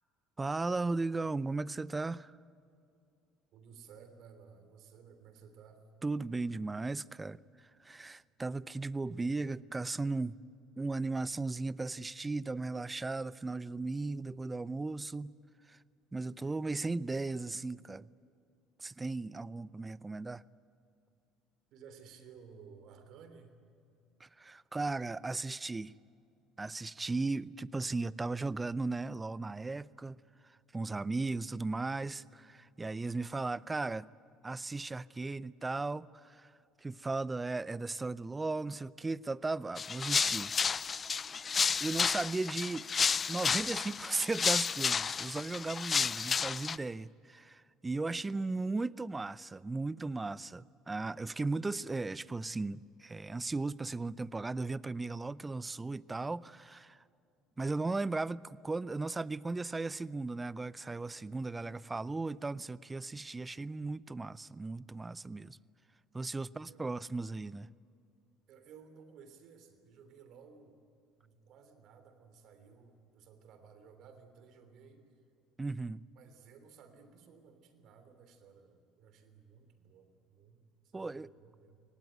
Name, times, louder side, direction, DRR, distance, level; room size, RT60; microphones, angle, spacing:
voice 1, 0.4-2.4 6.0-10.4 10.8-15.4 15.7-15.8 16.1-18.1 18.8-20.4 24.2-25.9 26.6-30.2 30.7-34.1 34.4-36.5 36.8-40.5 41.8-42.9 43.3-57.0 57.6-65.6 66.1-67.7 75.6-76.0 80.9-81.3, right 3 dB, 20° right, 0.6 m, -36 dB
voice 2, 3.5-5.8 9.0-9.4 21.7-23.6 66.5-66.8 68.5-70.8 71.2-75.0 76.1-81.8, right 6 dB, 60° right, 3.2 m, -57 dB
sound 1, 39.8-46.8, left 6 dB, 35° left, 0.5 m, -31 dB
24.0 x 18.5 x 9.2 m
hypercardioid pair, 65°, 0 cm